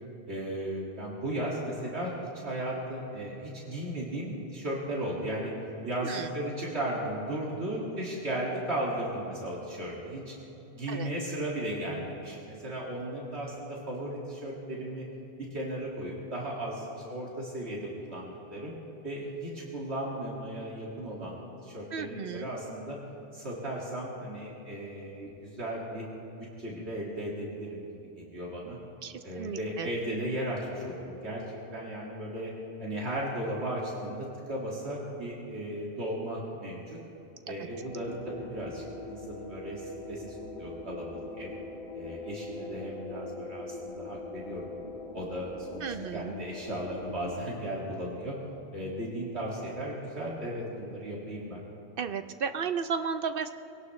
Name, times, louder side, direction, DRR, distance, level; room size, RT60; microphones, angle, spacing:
voice 1, 0.3-2.1 2.4-5.5 5.8-10.3 10.7-15.1 15.5-18.7 19.0-23.0 23.3-26.0 26.4-27.9 28.2-28.8 29.2-32.5 32.8-37.0 37.5-41.5 41.9-44.7 45.1-48.4 48.7-51.6, right 1 dB, 85° right, -5 dB, 2.5 m, -36 dB
voice 2, 21.9-22.5 29.0-29.9 37.5-37.6 45.8-46.3 52.0-53.5, right 6 dB, 60° right, 9 dB, 0.8 m, -34 dB
sound 1, 37.7-47.4, left 2 dB, 30° right, 2.3 m, -42 dB
22.0 x 17.5 x 3.2 m, 2.9 s
omnidirectional pair, 1.1 m